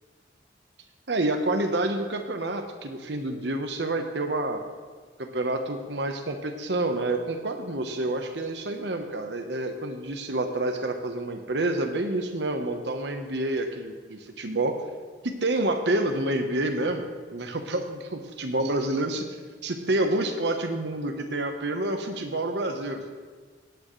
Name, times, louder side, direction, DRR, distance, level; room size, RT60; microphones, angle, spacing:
voice 1, 1.1-4.6 5.2-14.8 15.2-17.0 17.3-19.3 19.6-23.1, right 2 dB, 75° right, 5 dB, 1.1 m, -28 dB
17.5 x 9.1 x 3.2 m, 1.5 s
head